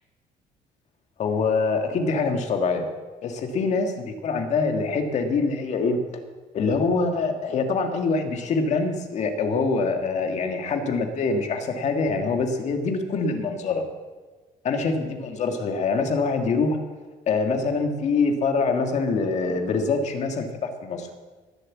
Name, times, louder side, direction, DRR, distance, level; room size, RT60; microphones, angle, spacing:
voice 1, 1.2-2.9 3.2-6.0 6.5-13.8 14.6-16.8 17.3-21.1, left 4 dB, 50° left, 5 dB, 2.0 m, -24 dB
19.5 x 7.7 x 7.4 m, 1.4 s
cardioid pair, 155°, 16 cm